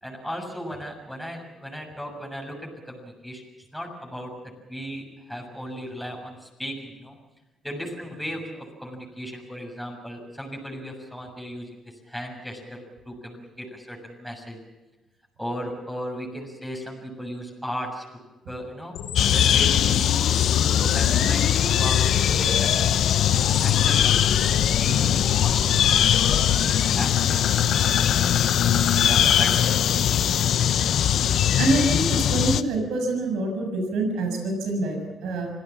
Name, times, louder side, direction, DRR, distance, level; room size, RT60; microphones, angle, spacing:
voice 1, 0.0-3.4 3.7-4.3 4.7-5.0 5.3-7.2 7.6-14.6 15.4-18.0 18.5-18.9 19.3-20.0 20.7-22.8 23.3-25.6 25.9-27.7 28.0-28.7 29.0-30.2, equal, ahead, 1 dB, 7.0 m, -36 dB
sound 1, 18.9-26.9, left 8 dB, 85° left, 2.4 m, -31 dB
sound 2, 19.2-32.6, left 10 dB, 70° left, 1.0 m, -21 dB
voice 2, 31.6-35.5, right 2 dB, 90° right, 4 dB, 6.9 m, -26 dB
26.0 x 17.0 x 7.3 m, 1.1 s
cardioid pair, 90°, 0 cm